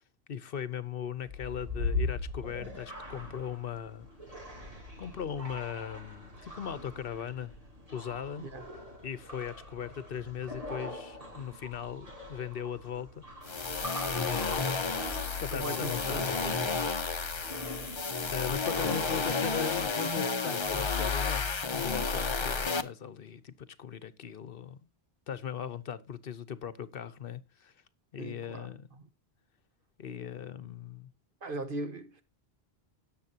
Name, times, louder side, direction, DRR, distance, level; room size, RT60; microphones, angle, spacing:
voice 1, 0.3-4.1 4.4-4.5 5.0-7.5 7.9-8.4 9.0-13.2 14.1-16.7 18.3-24.8 25.3-27.7 28.1-28.9 30.0-31.1, left 8 dB, 65° left, 1.0 m, -39 dB
sound 1, 1.2-20.0, left 2 dB, 35° right, 3.4 m, -41 dB
sound 2, 13.4-22.8, left 4 dB, 30° left, 0.7 m, -31 dB
voice 2, 15.5-16.8 28.2-29.0 31.4-32.2, right 2 dB, 60° right, 1.4 m, -39 dB
17.5 x 7.2 x 2.8 m
omnidirectional pair, 1.0 m